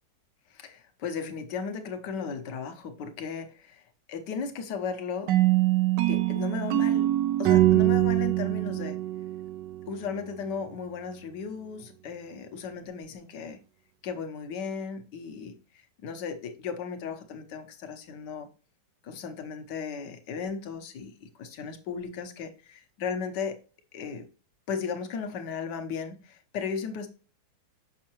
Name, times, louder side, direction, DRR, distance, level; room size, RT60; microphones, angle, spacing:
voice 1, 0.5-5.3 6.1-7.1 7.4-9.0 9.9-13.6 14.0-18.5 19.0-23.6 23.9-24.2 24.7-27.1, left 5 dB, 70° left, 1.6 m, -36 dB
sound 1, 5.3-10.2, right 15 dB, 80° right, 1.3 m, -24 dB
6.6 x 6.3 x 3.0 m
omnidirectional pair, 2.0 m